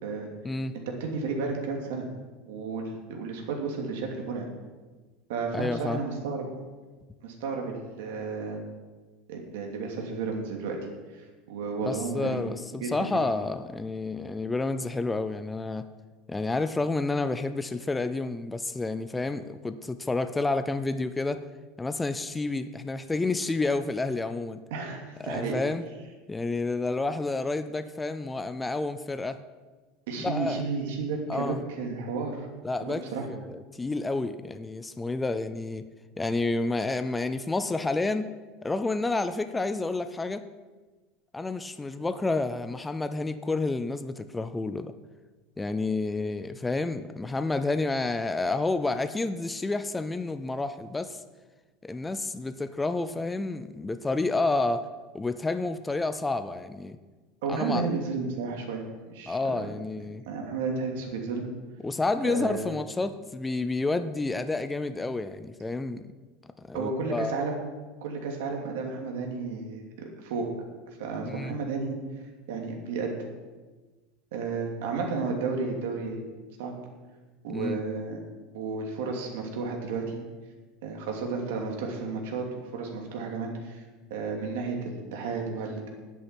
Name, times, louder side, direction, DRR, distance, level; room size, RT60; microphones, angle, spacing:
voice 1, 0.9-2.1 2.5-4.5 5.3-6.5 7.2-8.6 9.3-10.8 11.2-12.4 12.8-13.1 24.7-25.5 30.1-32.5 32.8-33.2 57.4-59.7 60.3-61.5 62.2-62.7 66.7-67.6 68.0-69.8 70.2-70.5 71.0-72.0 72.5-73.1 74.3-76.2 76.6-76.7 77.4-78.2 78.5-80.2 80.8-82.5 82.7-83.8 84.1-85.9, right 4 dB, 80° right, 1 dB, 2.7 m, -32 dB
voice 2, 5.5-6.0 11.9-15.9 16.3-21.4 21.8-24.6 25.2-25.8 26.3-29.4 30.2-30.6 31.3-31.6 32.6-35.9 36.2-38.3 38.6-40.4 41.3-44.9 45.6-51.2 51.8-54.9 55.1-57.0 57.5-57.9 59.3-60.2 61.8-66.0 66.4-67.3 71.2-71.6 77.5-77.8, left 3 dB, 10° left, 11 dB, 0.4 m, -30 dB
10.0 x 8.3 x 9.0 m, 1.3 s
cardioid pair, 180°, 0 cm